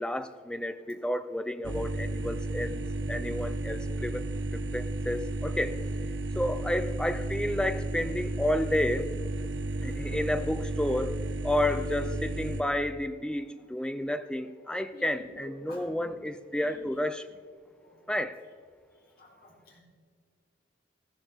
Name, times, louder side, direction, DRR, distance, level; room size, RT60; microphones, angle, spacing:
voice 1, 0.0-2.8 3.1-4.2 4.5-5.8 6.4-9.1 9.8-11.2 11.4-17.3 18.1-18.4, left 1 dB, 5° left, 11 dB, 0.4 m, -31 dB
sound 1, 1.6-12.6, right 2 dB, 75° right, 0.8 m, -33 dB
voice 2, 9.8-10.2 14.9-16.1 16.6-16.8 17.8-18.0 19.2-19.8, left 1 dB, 55° left, -3 dB, 3.5 m, -49 dB
14.0 x 13.5 x 3.6 m, 2.1 s
head